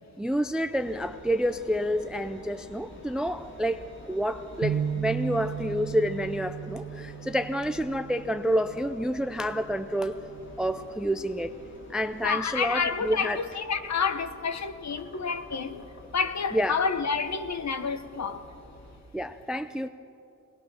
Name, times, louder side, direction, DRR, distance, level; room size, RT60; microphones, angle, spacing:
voice 1, 0.2-10.2 10.6-11.6 11.9-13.4 16.5-16.8 19.1-19.9, equal, 5° right, 0.4 m, -29 dB
Engine, 0.7-19.0, left 1 dB, 40° left, 2.4 m, -48 dB
sound 1, 4.6-8.9 9.4-9.6 10.4-10.9, right 8 dB, 65° right, 1.0 m, -35 dB
voice 2, 12.2-15.8 16.1-18.4, left 5 dB, 60° left, 1.1 m, -29 dB
22.5 x 19.5 x 6.2 m
wide cardioid pair, 160°, 30 cm